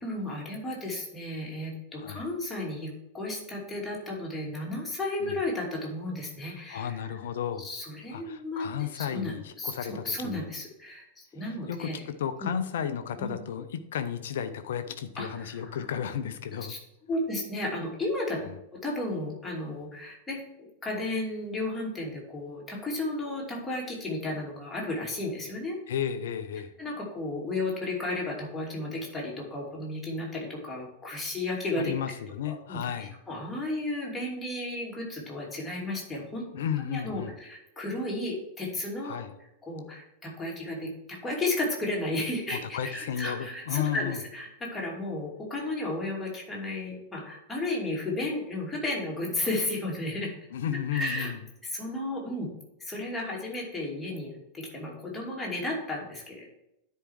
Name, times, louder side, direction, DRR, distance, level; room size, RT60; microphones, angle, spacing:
voice 1, 0.0-7.1 7.6-8.7 8.9-12.1 12.4-12.5 13.2-13.4 15.2-15.8 16.7-16.8 17.1-18.4 18.7-25.8 26.8-31.9 32.5-36.5 36.9-39.2 39.6-50.3 50.9-51.3 51.6-52.5 52.8-56.5, left 2 dB, 10° left, -3 dB, 2.8 m, -33 dB
voice 2, 6.7-7.7 8.1-10.5 11.7-16.7 25.9-26.7 31.8-33.1 36.5-37.3 39.0-39.3 42.5-44.2 50.5-51.4, left 9 dB, 60° left, 10 dB, 0.7 m, -33 dB
10.0 x 4.5 x 4.7 m, 0.82 s
figure-of-eight pair, 90°, 0 cm